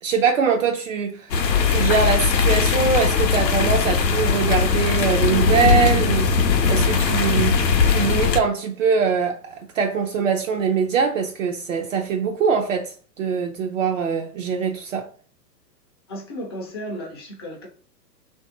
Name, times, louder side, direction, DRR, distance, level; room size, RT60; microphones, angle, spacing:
voice 1, 0.0-7.6 7.9-15.1, right 6 dB, 50° right, 0.6 m, -23 dB
sound 1, 1.3-8.4, left 5 dB, 80° left, 0.6 m, -19 dB
voice 2, 16.1-17.7, equal, 15° left, 0.4 m, -34 dB
3.0 x 2.6 x 3.6 m
figure-of-eight pair, 105°, 50 cm